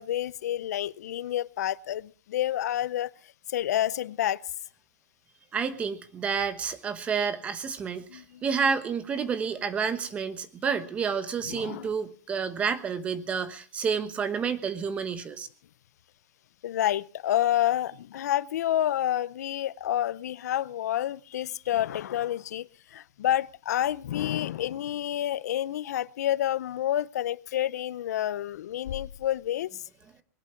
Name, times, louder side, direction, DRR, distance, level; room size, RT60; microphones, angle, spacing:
voice 1, 0.0-3.1 3.5-4.4 8.1-8.4 11.4-11.9 16.6-29.8, left 12 dB, 85° left, 0.7 m, -29 dB
voice 2, 5.5-15.5, right 6 dB, 15° right, 1.2 m, -30 dB
20.5 x 11.5 x 5.8 m
supercardioid pair, 170°, 9 cm